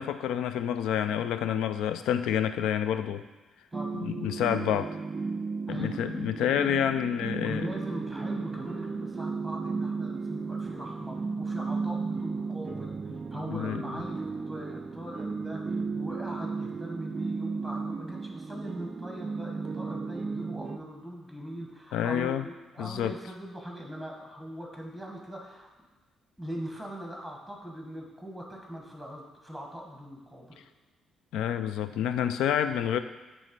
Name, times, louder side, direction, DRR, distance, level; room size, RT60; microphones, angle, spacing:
voice 1, 0.0-3.2 3.9-4.9 5.7-7.7 13.5-13.8 21.9-22.5 22.8-23.1 31.3-33.0, left 9 dB, 85° left, 10 dB, 0.3 m, -28 dB
voice 2, 3.7-4.3 5.7-6.0 7.4-25.7 26.4-30.6, equal, ahead, 0 dB, 1.3 m, -41 dB
sound 1, 3.7-20.8, right 4 dB, 35° right, 0.3 m, -34 dB
7.5 x 3.2 x 5.2 m, 1.3 s
cardioid pair, 90°, 0 cm